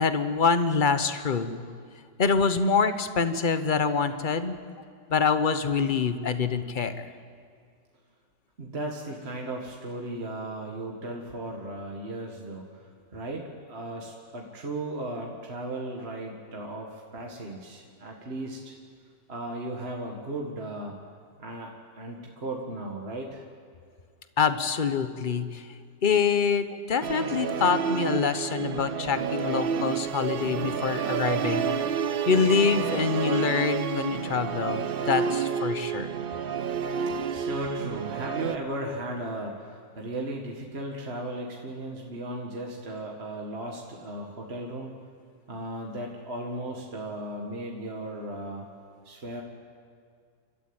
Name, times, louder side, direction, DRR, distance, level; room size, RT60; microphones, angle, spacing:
voice 1, 0.0-1.6 2.2-4.6 5.1-7.1 24.4-25.6 26.0-31.7 32.3-36.1, left 5 dB, 35° left, 11 dB, 0.9 m, -25 dB
voice 2, 8.6-12.8 13.1-18.7 19.3-21.0 21.4-21.7 22.0-23.5 37.3-44.9 45.5-48.7 49.1-49.4, right 1 dB, 35° right, -1 dB, 2.0 m, -36 dB
Musical instrument, 27.0-38.6, right 7 dB, 80° right, 0.5 m, -30 dB
30.0 x 13.5 x 8.9 m, 2.1 s
omnidirectional pair, 1.9 m